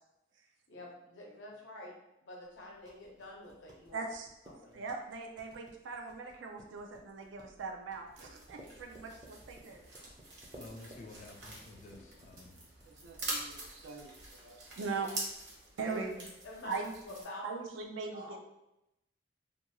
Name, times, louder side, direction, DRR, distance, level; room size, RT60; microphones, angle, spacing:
voice 1, 0.7-1.9 2.2-4.1 4.5-4.8 15.8-16.0 16.4-17.5 18.1-18.4, left 1 dB, 80° left, -2 dB, 0.7 m, -47 dB
sound 1, 2.5-13.6, right 1 dB, 20° right, 0.4 m, -58 dB
voice 2, 3.9-4.3 4.7-9.8 12.9-14.1 14.4-15.1 15.8-16.3 16.6-16.9 17.4-18.4, right 4 dB, 90° right, 2 dB, 0.4 m, -40 dB
sound 2, 8.1-17.2, right 2 dB, 65° right, 0.9 m, -45 dB
voice 3, 10.6-12.6, left 2 dB, 40° left, 3 dB, 0.4 m, -51 dB
2.5 x 2.3 x 2.9 m, 0.88 s
head